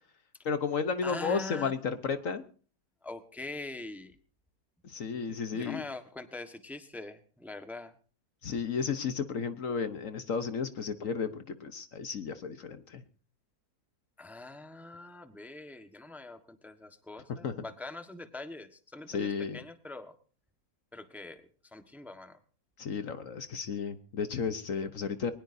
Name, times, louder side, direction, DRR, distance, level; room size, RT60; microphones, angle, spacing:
voice 1, 0.4-2.4 4.8-5.8 8.4-13.0 17.4-17.5 19.1-19.6 22.8-25.3, left 6 dB, 60° left, 10 dB, 1.3 m, -33 dB
voice 2, 1.0-1.7 3.0-4.1 5.5-7.9 14.2-20.1 20.9-22.4, left 2 dB, ahead, 7 dB, 1.2 m, -43 dB
22.0 x 19.5 x 2.7 m, 0.40 s
omnidirectional pair, 1.7 m